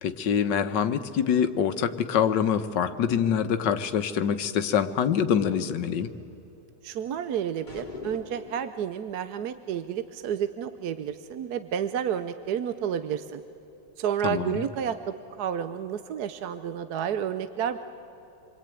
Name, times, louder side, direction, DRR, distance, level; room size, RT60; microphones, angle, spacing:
voice 1, 0.0-6.1 14.2-14.6, left 8 dB, 80° left, 9 dB, 1.6 m, -25 dB
voice 2, 6.8-13.4 14.0-17.8, right 8 dB, 65° right, 11 dB, 1.2 m, -30 dB
sound 1, 7.7-8.7, left 4 dB, 25° left, 2.8 m, -41 dB
28.0 x 23.0 x 9.1 m, 2.9 s
omnidirectional pair, 1.9 m